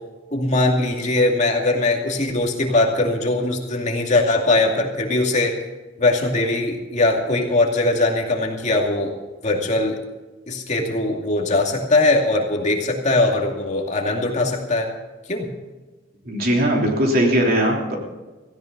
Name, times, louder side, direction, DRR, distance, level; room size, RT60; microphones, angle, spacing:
voice 1, 0.3-5.5 6.0-9.1 9.4-10.0 10.5-14.9 15.3-15.5, left 2 dB, 40° left, 1 dB, 2.5 m, -20 dB
voice 2, 16.3-18.0, equal, 50° right, 0 dB, 3.5 m, -19 dB
17.5 x 16.0 x 4.0 m, 1.2 s
head